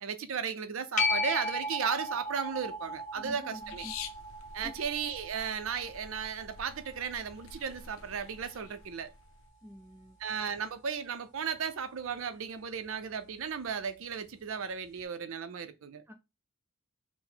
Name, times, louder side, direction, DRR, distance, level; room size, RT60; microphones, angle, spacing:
voice 1, 0.0-3.9 4.5-9.1 10.2-16.0, right 6 dB, 75° right, 0.5 m, -35 dB
sound 1, 1.0-8.1 13.7-13.8, left 2 dB, 40° left, 1.0 m, -36 dB
voice 2, 3.1-3.9 4.6-4.7 9.6-10.2 16.1-16.2, equal, 10° right, 0.6 m, -47 dB
sound 2, 3.6-9.5, left 6 dB, 75° left, 0.5 m, -48 dB
4.0 x 2.1 x 4.3 m
head